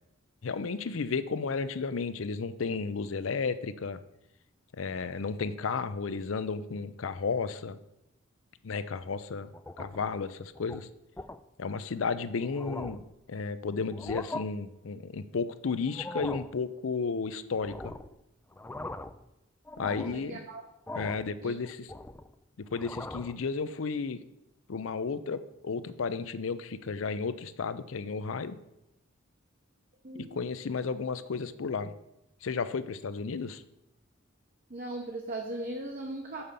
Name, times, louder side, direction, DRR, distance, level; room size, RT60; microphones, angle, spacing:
voice 1, 0.4-4.0 4.8-7.8 8.6-9.5 9.8-10.9 11.6-17.9 19.8-20.4 20.9-21.9 22.6-24.2 24.7-28.6 30.3-31.9 32.4-33.6, left 4 dB, 70° left, 13 dB, 0.5 m, -33 dB
sound 1, 9.5-10.1 10.6-10.8 11.2-11.4 12.0-12.1 12.4-13.1 13.9-14.4 15.8-16.5 17.6-18.1 18.5-19.2 19.7-20.2 20.9-21.3 21.7-22.3 22.7-23.4, left 2 dB, 10° left, 0.3 m, -40 dB
voice 2, 19.8-20.7 21.4-21.6 30.0-30.5 34.7-36.4, right 2 dB, 45° right, 1 dB, 1.0 m, -39 dB
6.8 x 5.6 x 6.7 m, 0.87 s
head